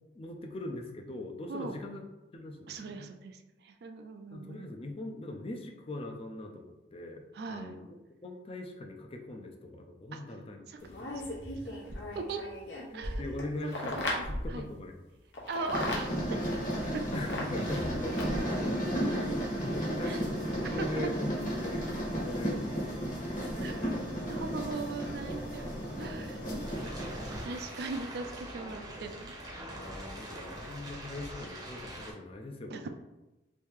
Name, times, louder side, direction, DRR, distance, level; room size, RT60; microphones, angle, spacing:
voice 1, 0.1-2.0 2.3-3.1 4.3-7.2 7.5-7.9 8.2-11.4 12.9-15.0 17.1-21.3 21.6-22.9 26.0-26.5 29.7-32.9, left 2 dB, 30° left, 3 dB, 0.4 m, -41 dB
voice 2, 1.5-1.8 2.7-4.7 7.3-7.8 10.1-10.2 10.7-10.8 11.5-11.9 12.1-12.4 12.9-13.4 14.0-14.7 15.5-16.6 16.9-17.1 20.0-20.2 20.6-21.1 23.6-25.7 26.0-26.4 27.0-29.4 32.7-32.9, right 3 dB, 60° right, 7 dB, 0.3 m, -40 dB
sound 1, 10.8-14.6 15.3-16.0 17.1-18.5 19.9-20.0, left 1 dB, 80° left, 0.9 m, -37 dB
sound 2, 15.7-27.4, equal, 50° left, 1.4 m, -33 dB
sound 3, 26.6-32.1, right 1 dB, 20° right, 0.7 m, -43 dB
3.0 x 2.7 x 3.5 m, 1.0 s
head